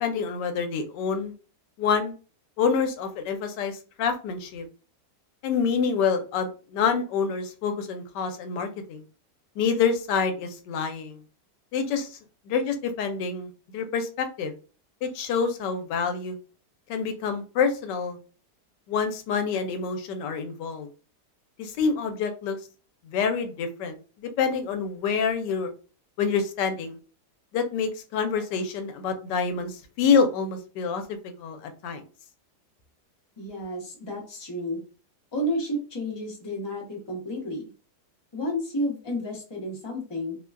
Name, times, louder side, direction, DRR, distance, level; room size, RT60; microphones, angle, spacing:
voice 1, 0.0-1.3 1.8-2.1 2.6-4.7 5.4-9.0 9.6-11.2 11.7-12.2 12.5-14.5 15.0-16.4 16.9-18.2 18.9-20.9 21.6-22.6 23.0-25.7 26.2-27.0 27.5-31.0 31.4-32.0, left 6 dB, 90° left, 7 dB, 1.2 m, -27 dB
voice 2, 33.4-34.8 35.3-37.7 38.3-40.4, equal, 20° left, -2 dB, 0.7 m, -31 dB
2.9 x 2.2 x 2.4 m, 0.36 s
omnidirectional pair, 1.8 m